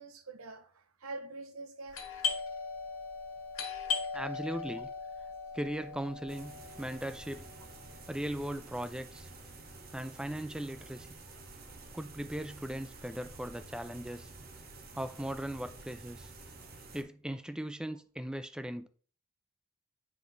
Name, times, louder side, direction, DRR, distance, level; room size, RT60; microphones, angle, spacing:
voice 1, 0.0-2.0, right 2 dB, 85° right, 0.9 m, -45 dB
Doorbell, 1.9-11.3 11.5-11.6 12.3-12.6 12.9-14.3, left 5 dB, 75° left, 1.6 m, -40 dB
voice 2, 4.1-4.9 5.5-7.5 8.1-9.3 9.9-11.1 11.9-14.3 14.9-16.3 16.9-18.9, right 1 dB, 5° right, 0.4 m, -38 dB
sound 1, 6.3-17.0, right 3 dB, 45° right, 1.0 m, -50 dB
9.3 x 3.4 x 4.0 m
head